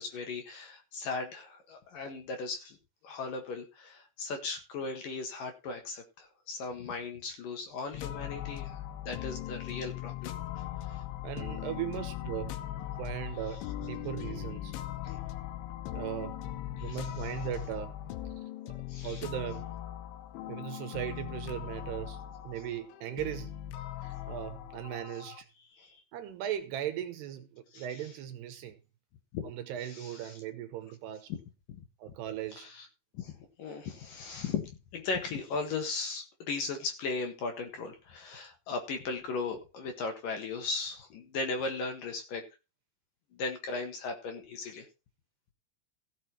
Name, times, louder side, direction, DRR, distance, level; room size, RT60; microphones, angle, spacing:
voice 1, 0.0-2.8 3.0-8.7 9.0-11.0 15.0-15.2 16.8-17.0 18.9-19.2 25.7-26.0 27.7-28.1 29.3-29.5 29.8-30.4 31.3-31.4 31.7-31.8 32.6-32.9 33.1-42.4 43.3-44.9, left 4 dB, 60° left, 2.7 m, -37 dB
sound 1, 7.9-25.4, left 13 dB, 90° left, 3.2 m, -40 dB
voice 2, 11.2-12.5 13.0-14.7 15.9-16.4 16.8-17.9 18.4-18.7 19.0-19.7 20.5-22.2 22.4-23.5 24.0-25.5 26.1-28.8 29.4-31.3 32.0-32.7, right 11 dB, 75° right, 2.7 m, -38 dB
16.0 x 6.6 x 4.4 m
omnidirectional pair, 5.4 m